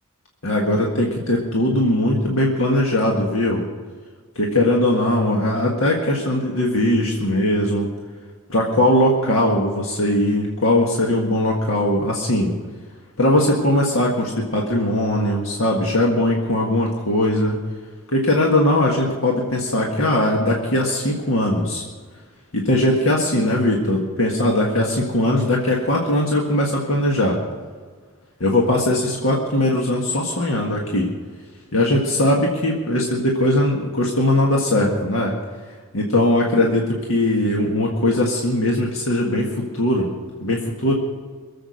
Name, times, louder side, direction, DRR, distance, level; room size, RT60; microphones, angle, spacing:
voice 1, 0.4-3.6 4.4-7.9 8.5-12.5 13.2-17.6 18.1-21.8 22.5-27.4 28.4-31.1 31.7-35.3 35.9-40.1 40.4-40.9, left 1 dB, 70° left, -1 dB, 1.7 m, -20 dB
23.0 x 7.8 x 6.4 m, 1.5 s
head